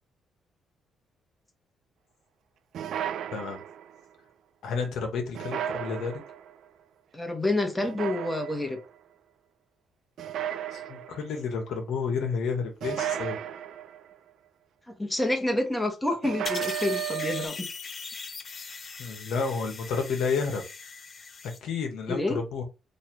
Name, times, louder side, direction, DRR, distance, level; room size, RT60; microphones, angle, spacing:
sound 1, 2.7-4.0 5.3-6.5 7.8-8.8 10.2-11.4 12.8-14.1 16.2-17.5, right 11 dB, 70° right, 0.3 m, -34 dB
voice 1, 4.6-6.2 10.7-13.4 19.0-20.6 21.6-22.6, left 5 dB, 80° left, 1.0 m, -30 dB
voice 2, 7.1-8.8 14.9-17.7 22.1-22.4, left 2 dB, 10° left, 1.0 m, -28 dB
sound 2, 16.4-21.6, left 4 dB, 45° left, 0.6 m, -40 dB
3.2 x 2.5 x 4.4 m
cardioid pair, 90°, 0 cm